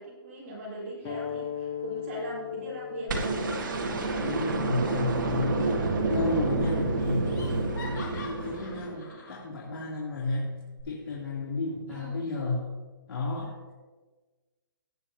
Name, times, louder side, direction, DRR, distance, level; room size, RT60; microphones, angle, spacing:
voice 1, 0.0-3.6 11.9-12.2, right 1 dB, 35° right, -6 dB, 3.8 m, -40 dB
sound 1, 1.0-6.2, left 9 dB, 15° left, 0.9 m, -39 dB
sound 2, 3.1-9.3 10.8-10.9, right 3 dB, 60° right, 1.9 m, -29 dB
voice 2, 4.1-12.7 13.1-13.7, left 2 dB, 80° left, -5 dB, 3.0 m, -32 dB
Laughter, 5.7-6.2 6.5-6.6 7.0-9.5, left 3 dB, 55° left, 2.7 m, -45 dB
18.0 x 9.0 x 2.8 m, 1.3 s
hypercardioid pair, 175°, 12 cm